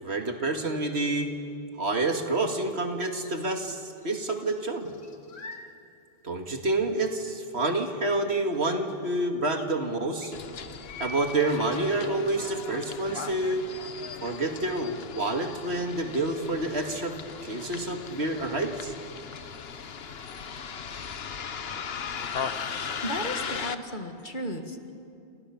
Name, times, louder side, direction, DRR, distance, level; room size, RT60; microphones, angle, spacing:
voice 1, 0.0-1.3 1.8-4.9 6.2-10.3 11.0-13.6 14.2-17.2 17.4-18.9, right 2 dB, 80° right, 4 dB, 2.4 m, -28 dB
sound 1, 3.2-4.1 4.4-5.7 6.3-6.4 8.5-8.6 8.8-8.9 9.6-9.7 10.2-11.4, left 2 dB, 90° left, 2.3 m, -43 dB
Bus, 10.3-23.7, left 6 dB, 70° left, 1.3 m, -38 dB
voice 2, 22.8-25.0, equal, 50° left, 6 dB, 2.2 m, -35 dB
29.0 x 28.5 x 7.2 m, 2.5 s
omnidirectional pair, 1.1 m